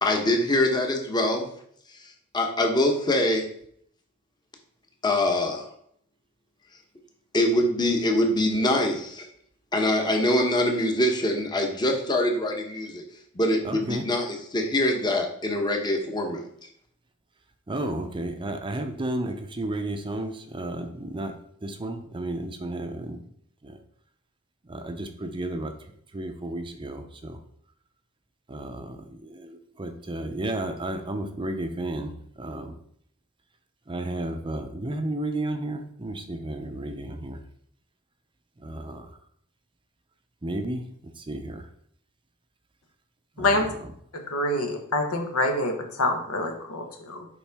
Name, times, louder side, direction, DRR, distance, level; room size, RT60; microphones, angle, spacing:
voice 1, 0.0-1.5 2.3-3.5 5.0-5.7 7.3-9.3 9.7-13.0 13.3-16.4, left 1 dB, 20° left, 3 dB, 0.9 m, -24 dB
voice 2, 13.6-14.0 17.7-21.3 21.6-23.2 23.6-23.8 24.7-25.7 26.1-27.4 28.5-32.1 32.4-32.7 33.9-37.4 38.6-39.1 40.4-40.8 41.2-41.6 43.4-43.6, right 1 dB, 25° right, 6 dB, 0.6 m, -32 dB
voice 3, 43.4-43.7 44.1-47.3, left 2 dB, 85° left, 3 dB, 1.2 m, -26 dB
7.2 x 4.8 x 3.5 m, 0.66 s
head